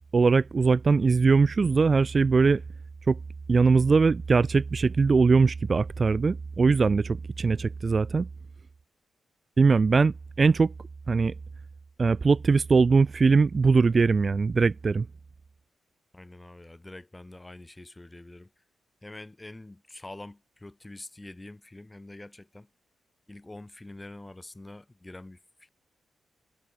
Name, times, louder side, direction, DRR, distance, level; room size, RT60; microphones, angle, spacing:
voice 1, 0.1-2.6 3.1-3.2 3.5-8.3 9.6-10.7 11.1-11.3 12.0-15.0, right 4 dB, 40° right, 0.9 m, -21 dB
voice 2, 16.1-18.5 19.0-22.7 23.3-25.7, left 2 dB, 15° left, 7.0 m, -45 dB
cardioid pair, 95°, 0 cm